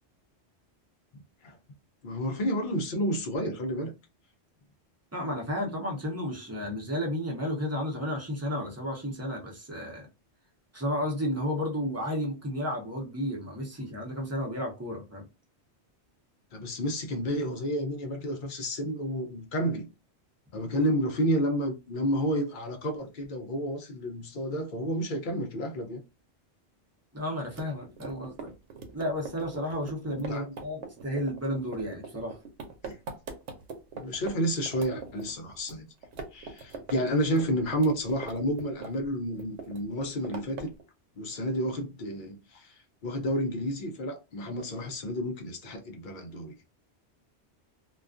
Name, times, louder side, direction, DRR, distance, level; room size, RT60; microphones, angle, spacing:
voice 1, 2.0-3.9 16.5-19.9 20.5-26.0 30.2-30.5 32.8-33.0 33.9-35.9 36.3-40.7 41.2-46.6, equal, 55° left, 0.6 m, -30 dB
voice 2, 5.1-10.1 10.7-15.3 27.1-28.5 28.9-32.4, equal, 15° right, 0.6 m, -32 dB
sound 1, 27.5-34.3 34.7-35.8 36.0-37.0 37.2-39.1 39.4-40.8, right 5 dB, 85° right, 0.9 m, -41 dB
2.3 x 2.2 x 2.4 m
omnidirectional pair, 1.2 m